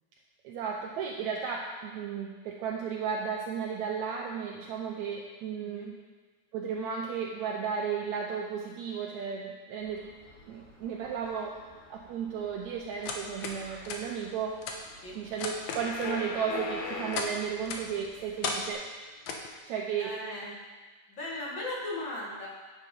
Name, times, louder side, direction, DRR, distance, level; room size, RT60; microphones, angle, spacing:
voice 1, 0.4-5.9 6.5-10.1 10.5-11.6 11.9-14.6 15.2-18.8 19.7-20.1, right 7 dB, 75° right, 0 dB, 1.9 m, -34 dB
voice 2, 5.6-5.9 15.0-15.2 20.0-20.5 21.1-22.5, left 1 dB, 40° left, -4 dB, 2.3 m, -37 dB
Gull seagull, 9.8-18.7, equal, 10° left, 1.7 m, -56 dB
sound 1, 13.0-13.6 13.8-14.0 14.6-14.8 15.3-17.3 17.7-17.8 18.4-18.6 19.3-19.5, left 4 dB, 70° left, 2.2 m, -34 dB
9.8 x 7.6 x 5.3 m, 1.3 s
omnidirectional pair, 3.6 m